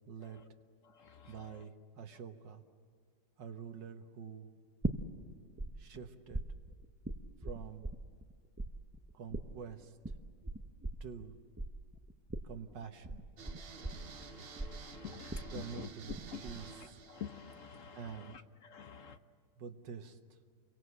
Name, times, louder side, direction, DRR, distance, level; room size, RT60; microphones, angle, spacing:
voice 1, 0.1-0.4 1.3-2.6 3.4-4.6 5.8-6.4 7.4-7.9 9.1-10.0 11.0-11.4 12.4-13.3 15.5-16.1 16.4-17.0 17.9-18.3 19.6-20.4, right 7 dB, 90° right, 1.9 m, -47 dB
voice 2, 0.8-1.7 13.4-19.2, left 7 dB, 55° left, 1.0 m, -49 dB
sound 1, 4.8-5.7 5.9-8.3 8.6-16.2 16.5-17.0, right 2 dB, 20° right, 0.4 m, -40 dB
sound 2, 13.4-18.3, right 7 dB, 50° right, 0.7 m, -52 dB
30.0 x 23.5 x 8.1 m
omnidirectional pair, 1.9 m